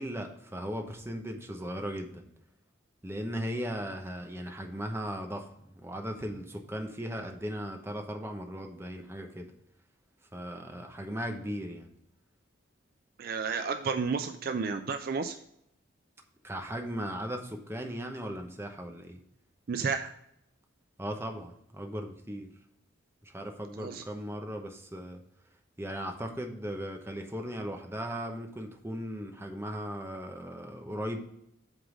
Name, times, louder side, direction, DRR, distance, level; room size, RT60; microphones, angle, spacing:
voice 1, 0.0-2.2 3.0-5.5 5.7-9.5 10.3-11.9 16.4-19.2 21.0-22.5 23.2-25.2 25.8-31.2, equal, 10° right, 3 dB, 0.8 m, -37 dB
voice 2, 13.2-15.4 19.7-20.1 23.8-24.0, right 5 dB, 50° right, 7 dB, 0.4 m, -31 dB
8.0 x 3.8 x 4.9 m, 0.76 s
head